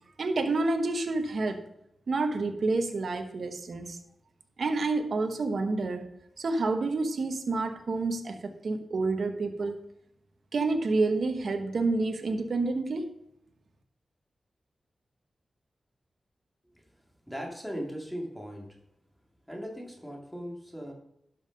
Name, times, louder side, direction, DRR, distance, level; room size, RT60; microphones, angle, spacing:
voice 1, 0.2-1.6 2.1-4.0 4.6-9.8 10.5-13.1, right 3 dB, 65° right, 6 dB, 1.1 m, -29 dB
voice 2, 17.3-18.8 19.5-20.9, equal, ahead, 0 dB, 2.3 m, -38 dB
11.5 x 5.5 x 5.3 m, 0.77 s
cardioid pair, 75°, 0 cm